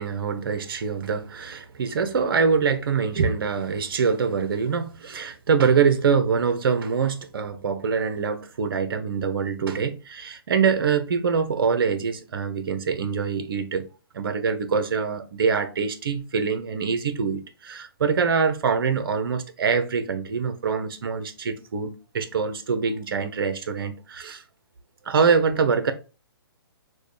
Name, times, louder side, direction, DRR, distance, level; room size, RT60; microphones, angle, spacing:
voice 1, 0.0-13.9 14.1-24.4 25.0-25.9, right 5 dB, 65° right, 0.8 m, -24 dB
6.3 x 2.3 x 3.2 m
hypercardioid pair, 135°, 13 cm